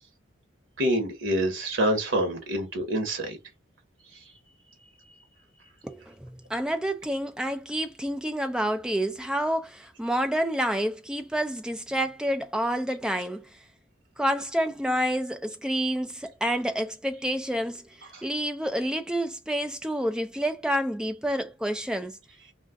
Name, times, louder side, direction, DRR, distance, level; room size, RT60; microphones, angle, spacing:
voice 1, 0.8-3.4 18.1-18.2, right 1 dB, 85° right, 1.0 m, -26 dB
voice 2, 5.8-13.5 14.2-17.9 18.2-22.2, equal, 5° right, 0.3 m, -28 dB
2.4 x 2.3 x 3.5 m
head